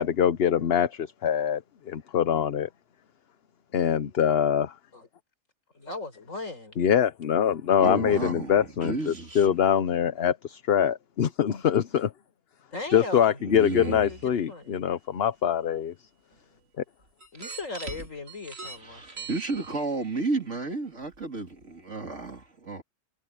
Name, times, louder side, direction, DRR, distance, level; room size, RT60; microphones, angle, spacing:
voice 1, 0.0-2.7 3.7-4.7 6.8-12.1 12.9-15.9, left 8 dB, 55° left, 1.0 m, -24 dB
voice 2, 5.7-6.8 8.8-9.8 12.7-13.4 13.8-14.8 17.3-19.3, left 2 dB, 80° left, 5.3 m, -39 dB
voice 3, 7.8-9.5 13.4-14.0 18.8-22.8, right 3 dB, 65° right, 3.5 m, -32 dB
sound 1, 13.6-14.2 15.7-15.8 17.2-20.1 21.0-21.2 21.6-21.7, right 4 dB, 85° right, 3.5 m, -42 dB
omnidirectional pair, 1.3 m